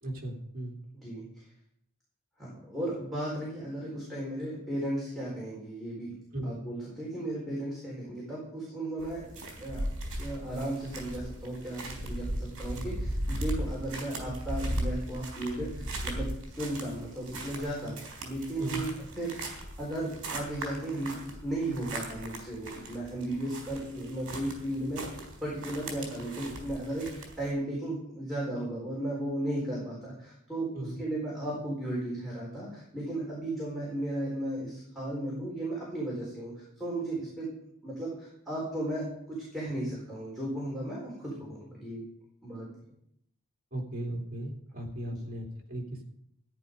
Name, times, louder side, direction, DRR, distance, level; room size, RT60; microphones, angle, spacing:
voice 1, 0.0-0.8 6.3-6.5 18.6-18.8 30.7-31.0 43.7-46.1, right 1 dB, 40° right, 0 dB, 3.0 m, -36 dB
voice 2, 0.9-1.4 2.4-6.1 6.4-9.8 10.2-18.0 18.2-19.4 19.8-25.1 25.4-37.5 37.8-42.0 42.4-42.7 45.0-45.1, right 1 dB, ahead, -7 dB, 4.2 m, -35 dB
sound 1, 9.0-27.5, right 1 dB, 60° right, 3.9 m, -38 dB
14.0 x 10.0 x 5.3 m, 0.74 s
head